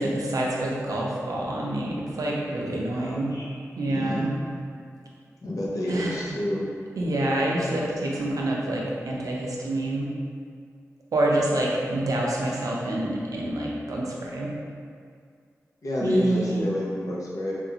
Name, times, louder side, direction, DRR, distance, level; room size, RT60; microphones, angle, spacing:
voice 1, 0.0-3.3 3.8-4.3 5.9-6.2 7.0-10.1 11.1-14.5 16.0-16.6, right 1 dB, 85° right, -3 dB, 0.5 m, -27 dB
voice 2, 3.0-3.5 3.9-4.3 5.4-6.7 15.8-17.5, left 1 dB, 80° left, -5 dB, 0.7 m, -29 dB
3.6 x 2.5 x 2.8 m, 2.2 s
cardioid pair, 55°, 6 cm